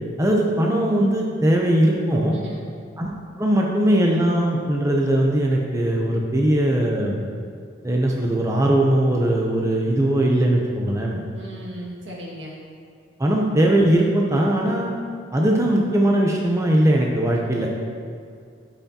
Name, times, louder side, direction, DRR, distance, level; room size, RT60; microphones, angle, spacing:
voice 1, 0.2-2.4 3.0-3.1 3.4-7.3 7.8-11.2 13.2-14.9 15.3-17.8, right 1 dB, 15° right, -1 dB, 0.6 m, -20 dB
voice 2, 2.3-2.7 11.4-12.5, equal, 75° right, -4 dB, 1.8 m, -37 dB
12.5 x 5.8 x 2.8 m, 2.3 s
head